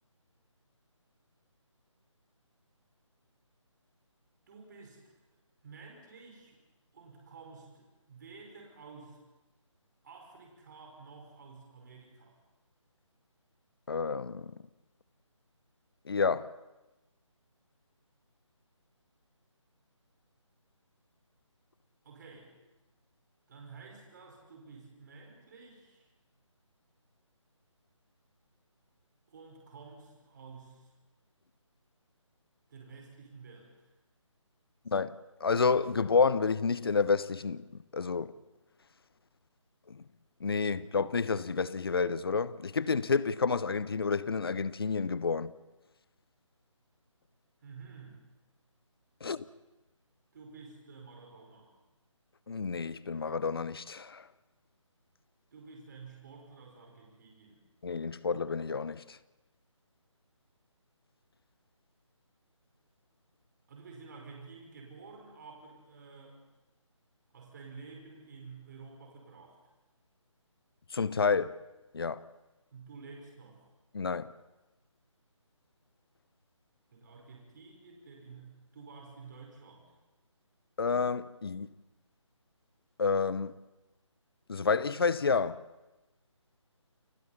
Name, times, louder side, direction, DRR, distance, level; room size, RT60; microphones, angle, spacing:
voice 1, 4.5-5.1 5.6-6.6 6.9-9.2 10.0-12.4 22.0-22.5 23.5-26.1 29.3-30.9 32.7-33.7 47.6-48.2 50.3-51.7 55.5-57.6 63.7-66.4 67.3-69.6 72.7-73.7 76.9-79.9, right 4 dB, 35° right, 5.1 m, -51 dB
voice 2, 13.9-14.6 16.1-16.5 34.9-37.7 37.9-38.3 39.9-40.0 40.4-45.5 49.2-49.4 52.5-54.3 57.8-59.2 70.9-71.6 71.9-72.2 73.9-74.3 80.8-81.7 83.0-83.5 84.5-85.6, left 5 dB, 50° left, 0.8 m, -29 dB
29.0 x 25.5 x 4.3 m
figure-of-eight pair, 150°, 16 cm